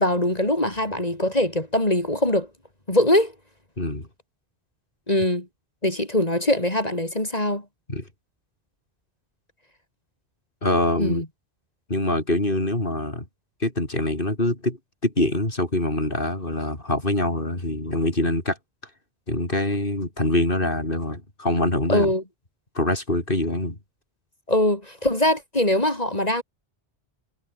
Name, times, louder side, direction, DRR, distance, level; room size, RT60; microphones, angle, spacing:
voice 1, 0.0-2.5 2.9-3.3 5.1-5.5 5.8-7.6 11.0-11.3 21.9-22.2 24.5-26.4, left 1 dB, 35° left, 4.2 m, -22 dB
voice 2, 3.8-4.1 7.9-8.0 10.6-11.2 11.9-13.3 13.6-14.8 15.0-18.6 19.3-22.1 22.8-23.8, left 1 dB, 50° left, 5.7 m, -24 dB
omnidirectional pair, 1.1 m